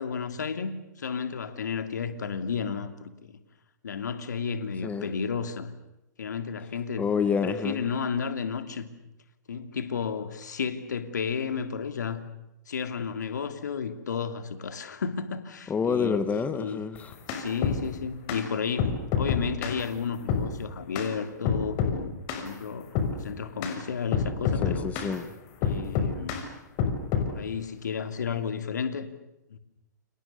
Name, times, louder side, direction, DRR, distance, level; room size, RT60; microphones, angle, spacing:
voice 1, 0.0-3.4 3.8-5.7 6.2-7.1 7.4-8.9 9.5-12.3 12.7-16.2 16.5-16.8 17.3-24.9 25.6-26.4 27.3-29.1 29.5-29.6, left 6 dB, 70° left, 9 dB, 2.9 m, -32 dB
voice 2, 7.0-7.8 15.7-17.1 24.6-25.2, left 6 dB, 15° left, 12 dB, 1.7 m, -28 dB
sound 1, 17.0-17.8 18.3-18.4 18.8-19.8 20.3-20.5 20.9-21.1 21.4-22.0 22.3-22.5 22.9-23.1 23.6-23.8 24.1-25.1 25.6-26.4 26.8-27.3, left 6 dB, 40° left, 6.0 m, -27 dB
29.5 x 27.5 x 6.9 m, 0.90 s
figure-of-eight pair, 115°, 10 cm